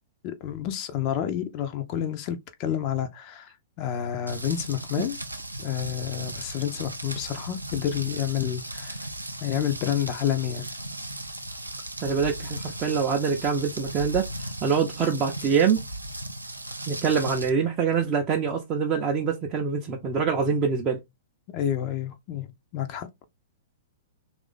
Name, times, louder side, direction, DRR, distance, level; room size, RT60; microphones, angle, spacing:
voice 1, 0.2-5.2 5.6-9.0 9.4-10.7 21.5-22.5 22.7-23.1, left 10 dB, 35° left, 0.5 m, -29 dB
Rain, 4.3-17.5, right 1 dB, 85° right, 0.5 m, -37 dB
voice 2, 12.0-14.3 14.6-15.8 16.9-21.0, right 6 dB, 25° right, 0.5 m, -25 dB
3.1 x 2.5 x 3.6 m
figure-of-eight pair, 105°, 0 cm